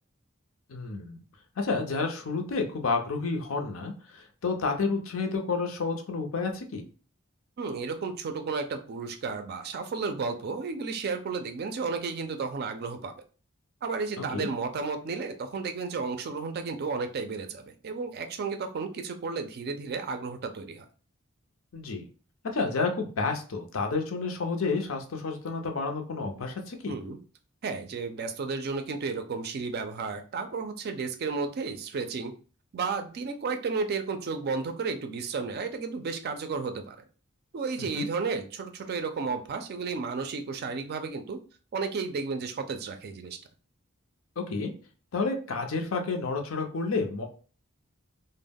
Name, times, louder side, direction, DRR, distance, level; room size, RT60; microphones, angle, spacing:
voice 1, 0.7-1.2 1.6-6.8 14.3-14.5 21.7-22.0 22.5-27.0 37.8-38.1 44.4-44.7 45.1-47.3, left 4 dB, 70° left, 4 dB, 0.5 m, -30 dB
voice 2, 7.6-13.1 13.8-20.9 26.9-27.2 27.6-32.3 32.7-37.0 37.5-41.4 41.7-43.4, right 4 dB, 50° right, 7 dB, 0.4 m, -33 dB
2.2 x 2.0 x 3.4 m, 0.37 s
head